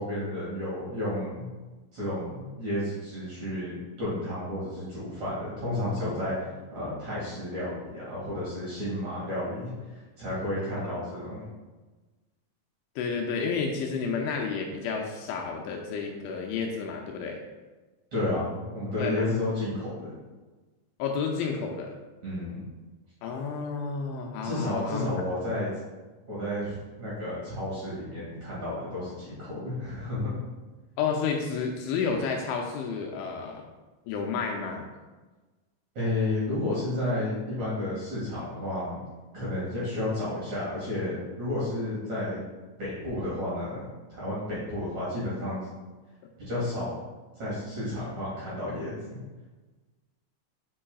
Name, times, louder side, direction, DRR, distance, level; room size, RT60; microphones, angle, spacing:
voice 1, 0.0-1.5 1.9-11.4 18.1-20.1 22.2-22.6 24.4-25.7 26.3-30.3 35.9-39.0 39.3-42.4 42.8-43.8 44.1-45.7 46.4-47.0 47.4-48.9, left 1 dB, 50° right, -9 dB, 2.4 m, -32 dB
voice 2, 13.0-17.4 19.0-19.3 21.0-21.9 23.2-25.1 31.0-33.6 34.1-34.8, left 5 dB, 80° left, 1 dB, 2.8 m, -31 dB
8.5 x 5.5 x 2.3 m, 1.2 s
omnidirectional pair, 5.6 m